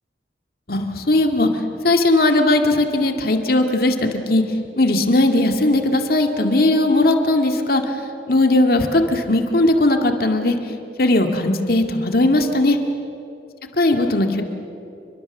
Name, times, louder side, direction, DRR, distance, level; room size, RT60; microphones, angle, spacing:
voice 1, 0.7-1.5 1.8-4.4 4.8-7.8 8.3-10.6 11.0-12.8 13.8-14.4, left 2 dB, 55° left, 5 dB, 2.1 m, -18 dB
29.5 x 22.5 x 7.3 m, 2.7 s
head